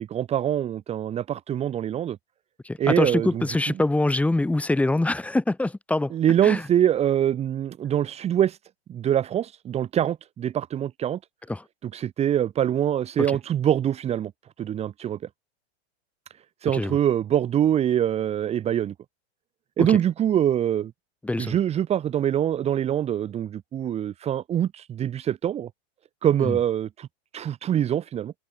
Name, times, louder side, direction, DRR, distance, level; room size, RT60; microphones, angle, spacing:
voice 1, 0.0-2.2 2.8-3.4 6.1-8.6 8.9-11.2 11.8-14.3 14.6-15.2 16.6-18.9 19.8-20.9 21.4-25.7 26.2-27.1 27.3-28.3, right 10 dB, 20° right, 2.6 m, -24 dB
voice 2, 2.6-6.1 6.4-6.6 11.5-11.6 16.7-17.0 19.8-20.0 21.2-21.6 26.4-26.6, left 2 dB, 5° left, 5.0 m, -24 dB
supercardioid pair, 160°, 32 cm